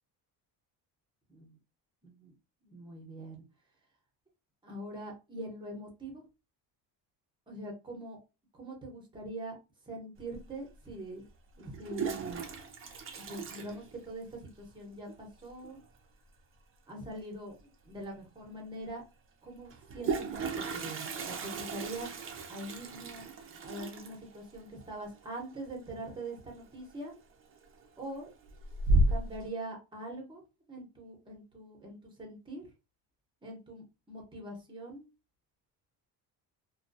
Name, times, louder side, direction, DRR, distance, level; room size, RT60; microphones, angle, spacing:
voice 1, 2.0-2.3 2.6-3.4 4.6-6.2 7.5-8.2 8.5-9.6 9.9-11.2 11.6-12.5 12.8-12.9 13.2-15.8 16.9-19.0 19.4-22.1 22.5-23.3 23.6-27.1 28.0-28.3 29.1-30.4 30.7-32.7 33.4-35.1, right 1 dB, 10° right, 0 dB, 0.9 m, -43 dB
Toilet flush, 10.3-10.4 11.6-14.5 14.7-14.8 15.1-15.2 15.5-15.8 17.6-17.7 18.0-18.1 19.7-26.3 26.6-27.1 27.5-28.0 28.4-29.4, right 2 dB, 30° right, 0.5 m, -34 dB
2.3 x 2.2 x 2.5 m, 0.28 s
cardioid pair, 125°, 43 cm